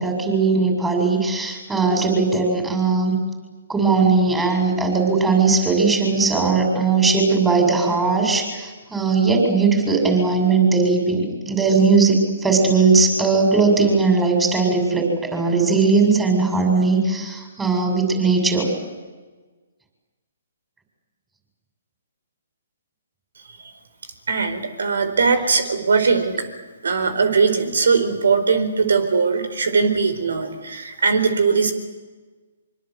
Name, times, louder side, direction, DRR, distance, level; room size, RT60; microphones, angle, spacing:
voice 1, 0.0-3.2 3.7-18.7, right 4 dB, 10° right, 3 dB, 7.4 m, -19 dB
voice 2, 24.3-26.4 26.8-31.7, right 5 dB, 70° right, 10 dB, 4.5 m, -20 dB
25.5 x 25.0 x 8.2 m, 1.3 s
figure-of-eight pair, 135°, 0 cm